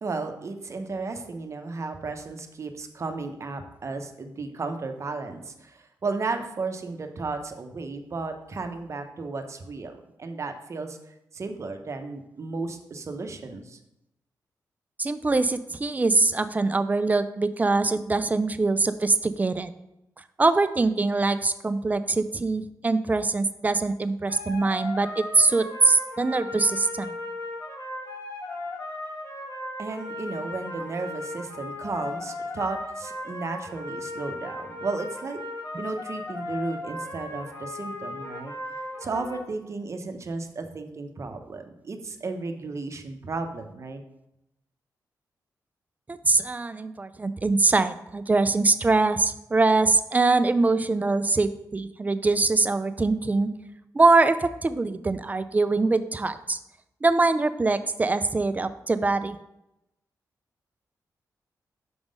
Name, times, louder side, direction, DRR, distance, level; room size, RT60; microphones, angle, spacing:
voice 1, 0.0-11.0 11.3-13.8 29.8-35.4 35.8-38.5 39.0-44.0, right 3 dB, 45° right, 6 dB, 0.7 m, -34 dB
voice 2, 15.0-19.7 20.4-27.1 46.1-53.5 53.9-56.6 57.0-59.4, right 3 dB, 25° right, 12 dB, 0.4 m, -23 dB
sound 1, 24.3-39.4, left 2 dB, 45° left, 1.7 m, -36 dB
6.0 x 3.7 x 5.1 m, 0.87 s
cardioid pair, 90°, 7 cm